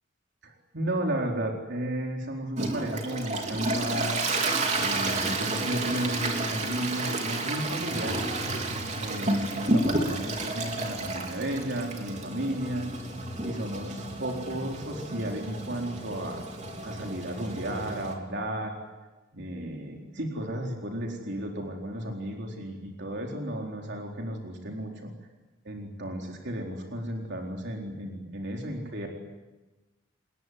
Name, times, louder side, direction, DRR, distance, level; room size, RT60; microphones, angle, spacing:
voice 1, 0.4-4.2 4.7-8.4 9.0-12.9 13.4-16.4 16.8-18.8 19.3-25.1 25.6-29.1, right 1 dB, 55° right, 1 dB, 4.2 m, -33 dB
Toilet flush, 2.6-18.1, right 2 dB, 35° right, 3.5 m, -31 dB
29.0 x 21.0 x 9.5 m, 1.2 s
head